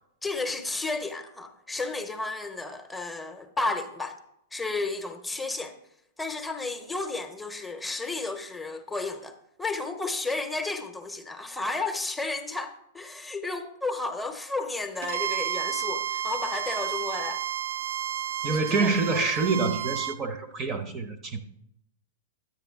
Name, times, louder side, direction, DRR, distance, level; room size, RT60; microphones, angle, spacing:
voice 1, 0.2-4.1 4.5-5.8 6.2-17.4 18.4-19.3, left 3 dB, 5° left, 0.9 m, -32 dB
Bowed string instrument, 15.0-20.2, right 10 dB, 55° right, 0.6 m, -31 dB
voice 2, 18.4-21.4, right 4 dB, 30° right, 0.8 m, -27 dB
10.5 x 8.7 x 3.6 m
figure-of-eight pair, 100°, 0 cm